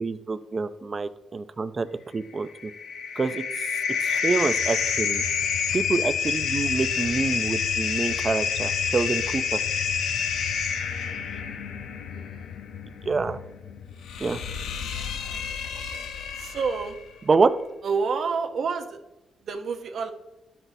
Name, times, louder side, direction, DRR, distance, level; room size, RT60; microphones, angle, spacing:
voice 1, 0.0-1.9 2.1-2.7 3.2-3.4 4.0-5.2 5.7-9.6 13.0-13.4 14.2-14.4 17.3-17.5, right 4 dB, 30° right, 11 dB, 0.4 m, -26 dB
sound 1, 2.4-17.0, left 6 dB, 90° left, 0.7 m, -28 dB
voice 2, 11.3-12.5 14.9-15.5 16.3-17.0 17.8-19.0 19.4-20.1, right 5 dB, 60° right, 6 dB, 0.8 m, -30 dB
12.5 x 6.0 x 2.7 m, 0.96 s
cardioid pair, 115°, 0 cm